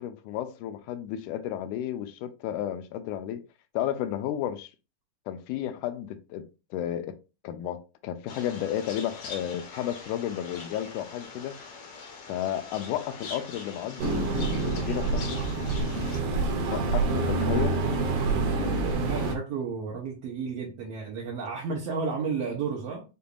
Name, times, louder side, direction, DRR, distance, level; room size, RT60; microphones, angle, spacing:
voice 1, 0.0-3.4 3.7-4.7 5.3-7.2 7.4-11.6 12.3-15.4 16.7-17.8, left 11 dB, 85° left, 2.1 m, -32 dB
sound 1, 8.3-16.2, left 4 dB, 60° left, 1.6 m, -43 dB
sound 2, 14.0-19.4, right 3 dB, 85° right, 2.6 m, -27 dB
voice 2, 19.1-23.0, right 5 dB, 70° right, 1.6 m, -32 dB
6.8 x 2.5 x 2.4 m
omnidirectional pair, 3.6 m